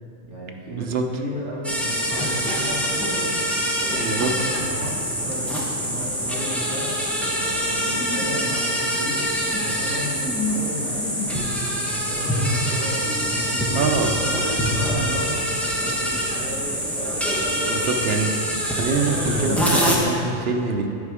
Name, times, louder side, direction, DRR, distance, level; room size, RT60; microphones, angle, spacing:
voice 1, 0.2-3.4 3.9-9.2 9.5-11.7 12.0-13.8 14.2-15.3 15.8-16.9, equal, 80° right, -5 dB, 2.1 m, -34 dB
sound 1, 1.6-20.0, equal, ahead, 0.8 m, -24 dB
voice 2, 4.0-4.3 13.7-14.1 17.7-18.3 18.7-20.9, right 4 dB, 60° right, 4 dB, 0.8 m, -25 dB
8.5 x 5.0 x 4.8 m, 2.6 s
omnidirectional pair, 1.2 m